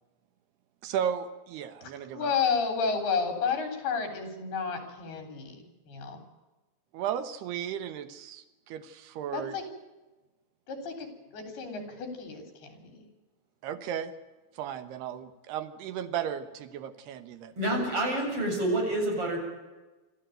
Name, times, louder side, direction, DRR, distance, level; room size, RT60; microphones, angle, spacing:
voice 1, 0.8-2.3 6.9-9.6 13.6-14.1 14.5-17.5, right 9 dB, 85° right, 10 dB, 3.2 m, -35 dB
voice 2, 2.1-6.2 9.3-9.6 10.7-11.1 11.3-13.0, left 5 dB, 75° left, 6 dB, 5.5 m, -31 dB
voice 3, 17.6-19.4, right 1 dB, 35° right, 0 dB, 8.4 m, -28 dB
26.0 x 14.5 x 9.1 m, 1.1 s
omnidirectional pair, 4.6 m